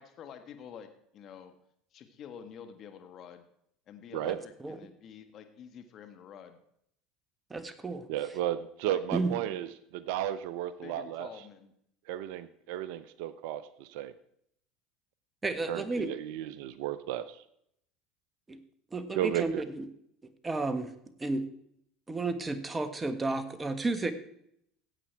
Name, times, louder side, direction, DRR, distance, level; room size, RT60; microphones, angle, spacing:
voice 1, 0.0-1.5 1.9-3.4 3.9-6.6 8.9-9.0 10.8-11.7, left 8 dB, 50° left, 8 dB, 1.5 m, -48 dB
voice 2, 7.5-8.0 9.1-9.3 15.4-16.1 18.5-18.6 18.9-19.9 20.4-20.9 21.2-21.4 22.1-24.1, right 3 dB, 20° right, 11 dB, 1.5 m, -32 dB
voice 3, 8.1-11.3 12.1-14.1 15.7-17.4 19.1-19.6, right 12 dB, 70° right, 14 dB, 0.7 m, -34 dB
15.5 x 8.5 x 4.6 m, 0.72 s
hypercardioid pair, 90°, 0 cm